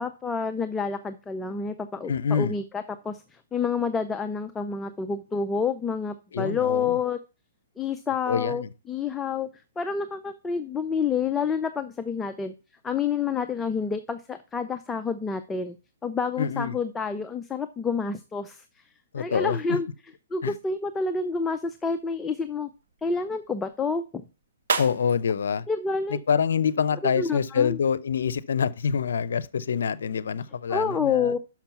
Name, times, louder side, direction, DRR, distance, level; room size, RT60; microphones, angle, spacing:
voice 1, 0.0-3.2 3.5-7.2 7.8-9.5 9.8-12.5 12.8-15.8 16.0-18.6 19.2-19.9 20.3-22.7 23.0-24.2 25.7-26.2 27.0-27.8 30.7-31.4, left 5 dB, 10° left, 0.5 m, -28 dB
voice 2, 2.1-2.6 6.3-7.0 8.3-8.7 16.4-16.8 19.1-19.6 20.4-20.5 24.8-25.6 26.1-31.3, left 7 dB, 75° left, 0.6 m, -26 dB
sound 1, 21.0-27.0, right 5 dB, 70° right, 1.3 m, -37 dB
6.1 x 5.9 x 5.6 m
hypercardioid pair, 140°, 0 cm